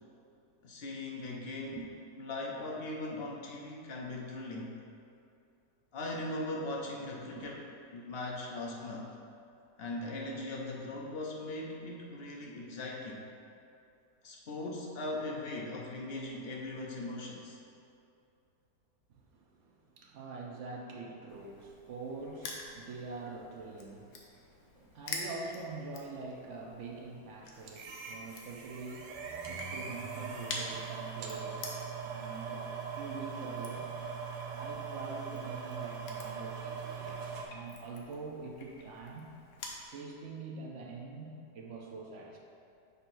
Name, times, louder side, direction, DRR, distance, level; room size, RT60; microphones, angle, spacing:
voice 1, 0.6-1.8 2.2-4.8 5.9-7.6 7.9-9.2 9.8-13.2 14.2-17.6, left 2 dB, 65° left, -2 dB, 0.6 m, -39 dB
voice 2, 19.1-33.9 34.5-37.2 37.5-39.3 39.9-42.4, right 3 dB, 60° right, 0 dB, 0.8 m, -45 dB
Crushing, 21.3-39.8, left 3 dB, 85° left, 1.4 m, -48 dB
sound 1, 27.7-37.5, right 6 dB, 85° right, 1.3 m, -41 dB
6.7 x 5.8 x 2.6 m, 2.5 s
omnidirectional pair, 1.8 m